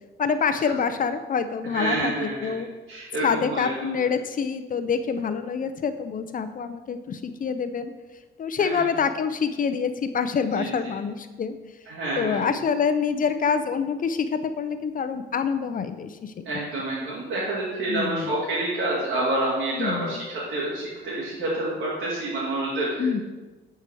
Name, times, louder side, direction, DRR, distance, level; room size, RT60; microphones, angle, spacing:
voice 1, 0.2-2.7 3.2-7.9 8.4-11.6 12.2-16.4 17.9-18.3 19.8-20.1 23.0-23.2, left 6 dB, 45° left, 10 dB, 0.6 m, -26 dB
voice 2, 1.7-2.5 2.9-3.9 8.6-8.8 10.5-10.9 11.9-12.6 16.4-23.2, right 2 dB, 75° right, -9 dB, 2.5 m, -28 dB
9.5 x 4.8 x 4.6 m, 1.2 s
cardioid pair, 90°, 20 cm